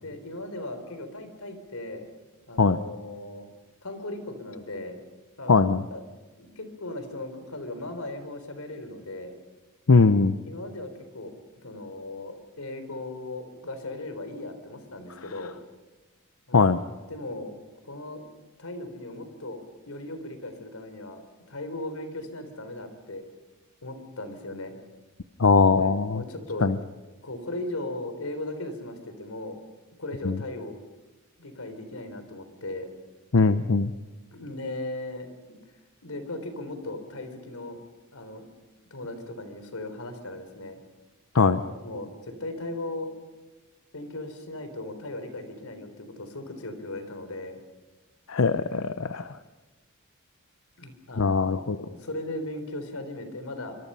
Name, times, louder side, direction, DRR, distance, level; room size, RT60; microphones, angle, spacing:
voice 1, 0.0-2.1 2.5-3.5 3.8-5.0 5.4-5.6 5.9-6.0 6.4-9.3 10.5-11.3 11.6-15.5 16.5-16.6 17.1-17.5 17.8-18.3 18.6-19.6 19.9-21.2 21.5-23.2 23.8-24.8 25.8-26.7 27.2-29.6 30.0-30.8 31.4-32.9 34.3-35.3 36.0-37.8 38.1-38.5 38.8-40.8 41.4-43.1 43.9-47.6 50.8-53.8, left 2 dB, 90° left, 8 dB, 3.7 m, -37 dB
voice 2, 5.5-5.8 9.9-10.4 16.5-16.8 25.4-26.2 26.6-26.7 30.2-30.3 33.3-33.9 41.3-41.6 48.3-49.3 51.2-51.8, left 4 dB, 70° left, 11 dB, 0.7 m, -20 dB
26.5 x 24.5 x 5.6 m, 1.2 s
head